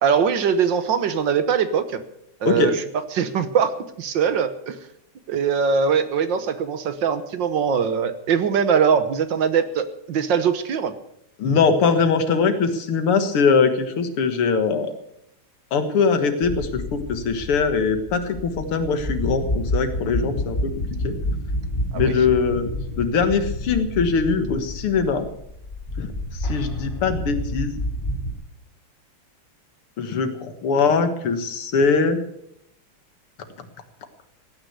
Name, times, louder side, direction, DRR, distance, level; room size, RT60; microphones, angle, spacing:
voice 1, 0.0-2.0 2.4-2.8 3.1-4.8 5.3-10.9 21.9-22.2, right 7 dB, 60° right, 11 dB, 1.7 m, -22 dB
voice 2, 11.4-14.9 15.7-20.7 21.0-21.1 21.9-22.7 23.0-25.2 26.0-26.1 26.4-27.8 30.0-32.2, left 5 dB, 85° left, 8 dB, 2.5 m, -21 dB
sound 1, 16.4-28.3, equal, 25° left, 2.9 m, -29 dB
16.5 x 9.5 x 8.2 m, 0.76 s
omnidirectional pair, 2.4 m